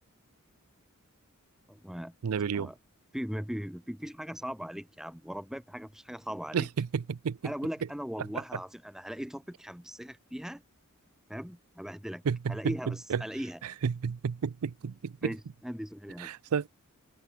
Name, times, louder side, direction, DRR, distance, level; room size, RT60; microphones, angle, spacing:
voice 1, 1.7-2.1 2.5-2.8 3.1-6.7 7.4-10.6 11.3-12.2 12.5-13.6 15.2-16.3, equal, ahead, 0.8 m, -39 dB
voice 2, 2.2-2.7 6.5-7.4 12.3-12.6 13.1-13.2 13.8-15.3 16.2-16.7, right 6 dB, 80° right, 0.5 m, -31 dB
head